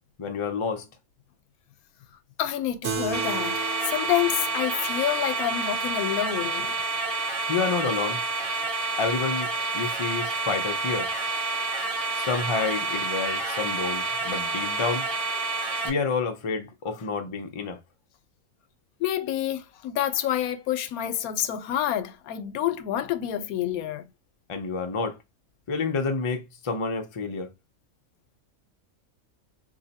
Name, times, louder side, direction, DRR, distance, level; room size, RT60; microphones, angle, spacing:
voice 1, 0.2-0.9 7.5-8.2 9.0-11.1 12.1-15.1 15.8-17.8 24.5-25.2 25.7-27.5, left 4 dB, 55° left, 0.3 m, -29 dB
voice 2, 2.4-6.7 19.0-24.0, left 11 dB, 85° left, 1.0 m, -28 dB
Keyboard (musical), 2.8-7.7, right 5 dB, 60° right, 1.0 m, -37 dB
sound 1, 3.1-15.9, right 3 dB, 25° right, 1.1 m, -29 dB
2.8 x 2.7 x 4.0 m
omnidirectional pair, 1.5 m